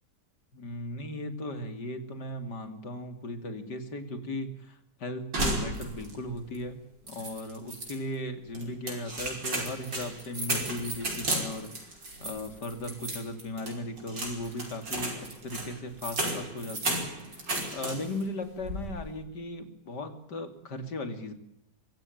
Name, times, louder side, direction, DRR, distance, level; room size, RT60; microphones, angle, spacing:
voice 1, 0.5-17.0 17.3-21.3, left 1 dB, 70° left, 8 dB, 3.3 m, -37 dB
sound 1, 5.3-6.2 6.5-6.6 7.1-8.0 8.5-18.2 18.6-19.1, right 1 dB, 85° right, 6.1 m, -34 dB
24.5 x 16.0 x 9.3 m, 0.81 s
omnidirectional pair, 1.9 m